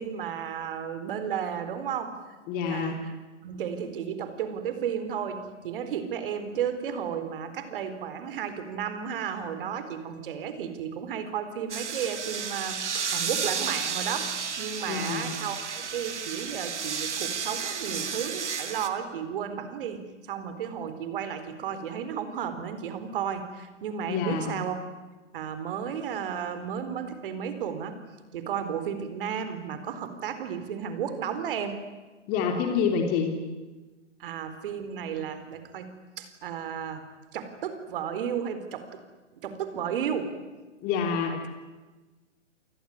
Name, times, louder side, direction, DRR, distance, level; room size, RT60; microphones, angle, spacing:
voice 1, 0.0-2.2 2.7-3.1 3.4-14.3 14.6-24.8 25.3-28.0 28.3-31.8 34.2-37.0 37.3-38.9 39.4-40.3 41.3-41.4, right 8 dB, 45° right, 10 dB, 4.2 m, -33 dB
voice 2, 2.5-3.0 14.9-15.3 24.1-24.6 32.3-33.3 40.8-41.4, left 6 dB, 25° left, 4 dB, 2.9 m, -27 dB
sound 1, 11.7-18.9, right 6 dB, 65° right, 2.8 m, -32 dB
28.5 x 20.0 x 9.7 m, 1.2 s
figure-of-eight pair, 130°, 37 cm